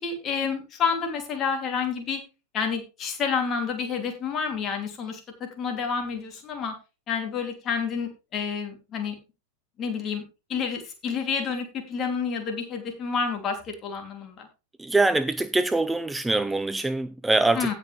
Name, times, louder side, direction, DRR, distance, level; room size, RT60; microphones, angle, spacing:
voice 1, 0.0-2.2 2.5-6.7 7.1-9.2 9.8-10.2 10.5-14.5 17.5-17.7, left 6 dB, 30° left, 2.9 m, -29 dB
voice 2, 14.8-17.7, right 2 dB, 5° right, 0.4 m, -24 dB
17.0 x 5.7 x 3.3 m
figure-of-eight pair, 90°, 0 cm